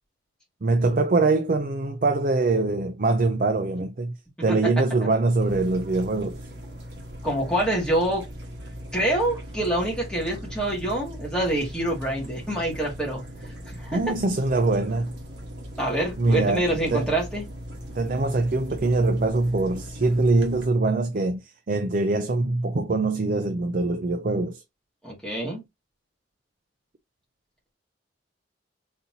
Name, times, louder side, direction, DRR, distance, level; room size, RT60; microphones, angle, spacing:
voice 1, 0.6-4.1 4.4-6.4 13.9-15.1 16.2-16.6 16.9-17.1 17.9-24.6, right 3 dB, 45° right, 0.5 m, -23 dB
sound 1, 5.4-20.6, equal, 70° right, 1.4 m, -39 dB
voice 2, 7.2-8.3 8.9-13.2 13.7-14.1 15.8-17.4 25.0-25.6, right 1 dB, 5° left, 2.3 m, -26 dB
4.1 x 4.0 x 2.8 m
head